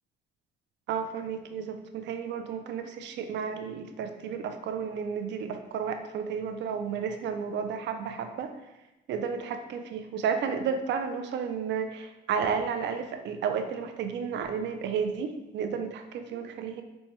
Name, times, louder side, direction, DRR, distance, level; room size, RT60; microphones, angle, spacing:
voice 1, 0.9-8.5 9.1-16.8, right 6 dB, 65° right, 6 dB, 0.4 m, -32 dB
4.2 x 2.2 x 2.9 m, 1.0 s
cardioid pair, 90°, 20 cm